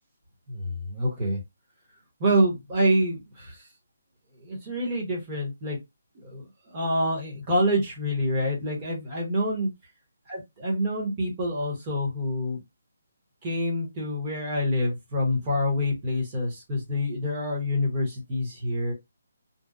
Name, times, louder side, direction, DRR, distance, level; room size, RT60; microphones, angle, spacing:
voice 1, 0.5-1.4 2.2-3.6 4.4-5.8 6.2-6.4 6.7-9.7 10.3-12.6 13.4-18.9, equal, 20° right, -3 dB, 1.0 m, -27 dB
2.7 x 2.1 x 2.4 m, 0.20 s
hypercardioid pair, 175°, 0 cm